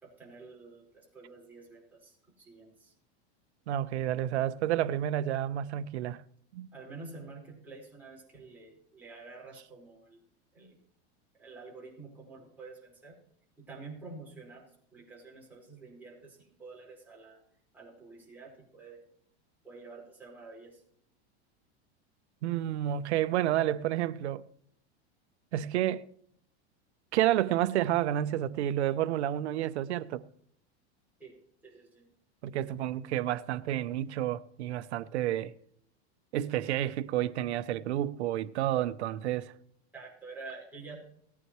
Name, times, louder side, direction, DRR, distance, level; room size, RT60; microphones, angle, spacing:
voice 1, 0.0-2.9 6.7-10.2 10.5-10.8 11.4-13.2 13.6-14.6 14.9-17.4 17.7-19.0 19.6-20.8 31.2-31.4 31.6-32.1 39.9-41.1, right 3 dB, 5° right, 4.9 m, -48 dB
voice 2, 3.7-6.2 6.5-6.7 22.4-24.4 25.5-26.1 27.1-30.2 32.4-35.5 36.3-39.5, right 12 dB, 90° right, 0.9 m, -30 dB
19.0 x 9.7 x 3.2 m
supercardioid pair, 155°, 33 cm